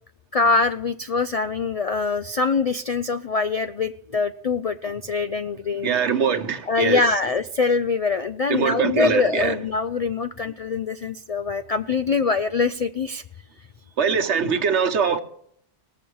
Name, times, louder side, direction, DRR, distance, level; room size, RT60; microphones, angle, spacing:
voice 1, 0.3-5.9 6.7-13.2, left 4 dB, 55° left, 0.4 m, -23 dB
voice 2, 5.8-7.0 8.5-9.5 14.0-15.2, right 6 dB, 70° right, 1.3 m, -22 dB
19.5 x 7.1 x 4.6 m
omnidirectional pair, 1.2 m